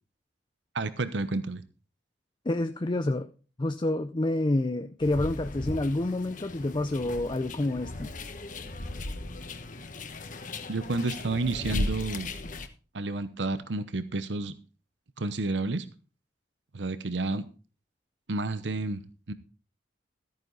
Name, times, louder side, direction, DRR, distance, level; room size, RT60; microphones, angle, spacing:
voice 1, 0.7-1.6 10.7-12.3 12.9-14.5 15.2-15.9 16.7-17.5 18.3-19.0 19.3-19.4, right 3 dB, 90° right, 13 dB, 0.9 m, -30 dB
voice 2, 2.5-3.3 3.6-8.1, left 2 dB, 25° left, 10 dB, 0.5 m, -28 dB
sound 1, 5.0-12.7, left 2 dB, 50° left, 1.2 m, -37 dB
14.0 x 9.2 x 4.0 m, 0.36 s
head